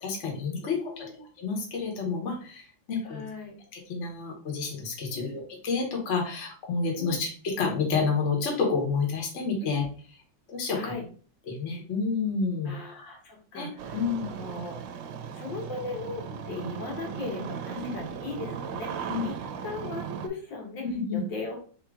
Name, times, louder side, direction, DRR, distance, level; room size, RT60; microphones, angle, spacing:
voice 1, 0.0-1.0 1.4-3.2 3.7-9.8 10.5-10.9 11.5-12.8 13.5-14.3 17.8-17.9 19.1-19.3 20.8-21.2, left 4 dB, 45° left, 0 dB, 1.3 m, -29 dB
voice 2, 0.6-1.2 3.0-3.6 5.1-5.4 7.0-7.2 9.6-9.8 10.7-11.0 12.6-14.0 14.3-15.1 15.3-19.3 19.6-20.8 21.1-21.6, left 3 dB, 70° left, 0 dB, 1.9 m, -38 dB
Engine starting, 13.8-20.3, right 7 dB, 75° right, 1.2 m, -37 dB
3.7 x 2.9 x 4.7 m, 0.42 s
omnidirectional pair, 2.1 m